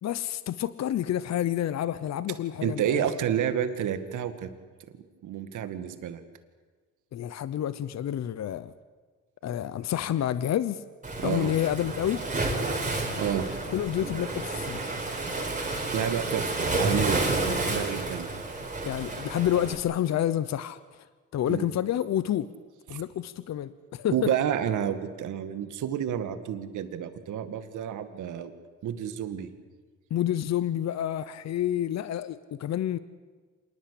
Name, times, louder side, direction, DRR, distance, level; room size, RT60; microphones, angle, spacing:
voice 1, 0.0-3.0 7.1-8.7 9.4-10.8 11.2-12.2 13.7-14.8 18.8-20.8 21.3-22.5 22.9-24.3 30.1-33.0, left 11 dB, 60° left, 15 dB, 0.9 m, -29 dB
voice 2, 2.6-4.5 4.9-6.2 11.2-11.5 13.2-13.5 15.9-18.3 21.5-21.7 22.9-23.0 24.1-28.5 28.8-29.5, right 9 dB, 80° right, 9 dB, 2.1 m, -30 dB
Waves surf, 11.0-19.8, right 2 dB, 25° right, 5.1 m, -30 dB
26.5 x 20.0 x 8.5 m, 1.4 s
cardioid pair, 90°, 30 cm